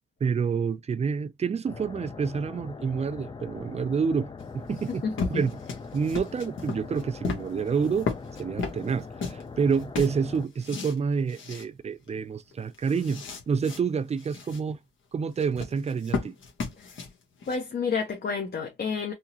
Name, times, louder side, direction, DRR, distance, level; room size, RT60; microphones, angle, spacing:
voice 1, 0.2-5.0 5.3-5.5 5.9-8.1 8.4-14.8 15.1-16.3, right 6 dB, 30° right, 0.4 m, -28 dB
sound 1, 1.7-10.5, left 4 dB, 25° left, 0.5 m, -42 dB
sound 2, 4.4-9.5 9.7-11.0 11.3-11.7 12.1-12.2 12.5-13.8 14.2-14.6 15.4-17.6, left 4 dB, 70° left, 1.2 m, -35 dB
voice 2, 4.7-5.4 17.5-19.1, left 5 dB, 50° left, 0.9 m, -30 dB
3.6 x 2.9 x 2.8 m
cardioid pair, 95°, 21 cm